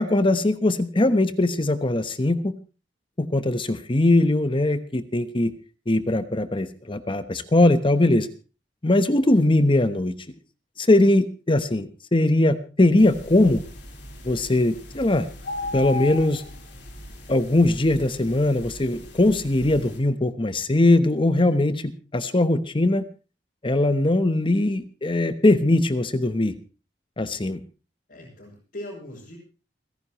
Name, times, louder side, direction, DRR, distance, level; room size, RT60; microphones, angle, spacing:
voice 1, 0.0-2.5 3.2-5.5 5.9-8.3 8.8-10.1 10.8-13.6 14.2-15.3 15.7-16.4 17.3-23.0 23.6-26.5 27.2-27.6, left 2 dB, 30° left, 11 dB, 1.0 m, -20 dB
sound 1, 13.0-20.0, left 2 dB, 80° left, 4.0 m, -37 dB
voice 2, 28.1-29.4, left 1 dB, 60° left, -7 dB, 6.3 m, -39 dB
30.0 x 10.5 x 3.1 m, 0.33 s
head